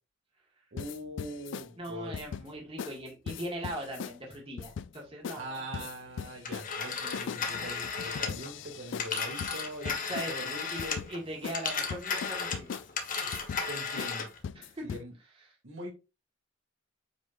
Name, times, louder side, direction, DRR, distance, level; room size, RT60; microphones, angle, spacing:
voice 1, 0.7-2.2 5.3-11.0 13.2-13.4 13.7-14.3 14.8-15.1 15.6-15.9, right 1 dB, 85° right, 0 dB, 3.0 m, -42 dB
sound 1, 0.8-1.7 2.1-2.5 2.8-3.0 3.3-4.2 4.6-5.0 5.2-5.4 5.7-10.4 10.8-11.1 11.4-11.6 11.9-12.9 13.3-13.6 14.0-14.1 14.4-15.0, left 6 dB, 65° left, 0.3 m, -39 dB
voice 2, 1.8-5.7 6.5-6.6 9.8-12.7 14.6-14.9, right 1 dB, 30° right, -1 dB, 2.2 m, -40 dB
Telephone, 6.4-11.2 11.5-14.4, left 5 dB, 45° left, 1.5 m, -35 dB
8.8 x 5.0 x 2.6 m, 0.28 s
head